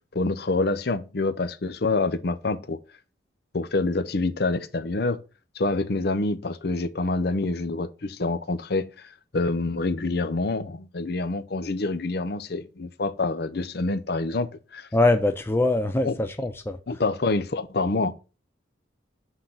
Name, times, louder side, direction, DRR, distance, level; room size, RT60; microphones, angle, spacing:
voice 1, 0.1-2.8 3.5-5.2 5.5-9.1 9.3-14.9 16.0-16.1 16.9-18.1, left 3 dB, 55° left, 0.6 m, -26 dB
voice 2, 14.9-16.8, left 2 dB, 10° left, 0.4 m, -23 dB
8.1 x 3.9 x 5.6 m
head